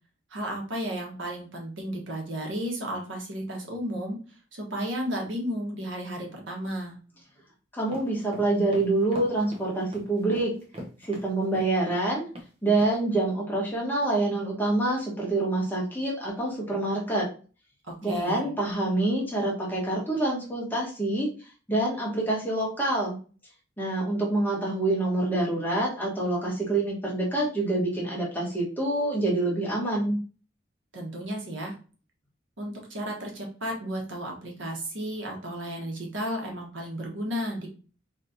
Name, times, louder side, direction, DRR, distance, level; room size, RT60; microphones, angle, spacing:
voice 1, 0.3-4.2 4.5-7.0 17.9-18.5 30.9-31.7 32.6-37.7, equal, 80° right, 0 dB, 1.3 m, -33 dB
voice 2, 7.7-10.5 11.0-12.3 12.6-17.3 18.0-21.3 21.7-23.2 23.8-30.2, right 2 dB, 10° left, -4 dB, 1.2 m, -26 dB
sound 1, 7.8-12.1 12.3-12.5 12.8-12.9, equal, 30° right, 0.8 m, -42 dB
4.1 x 3.0 x 2.7 m, 0.37 s
head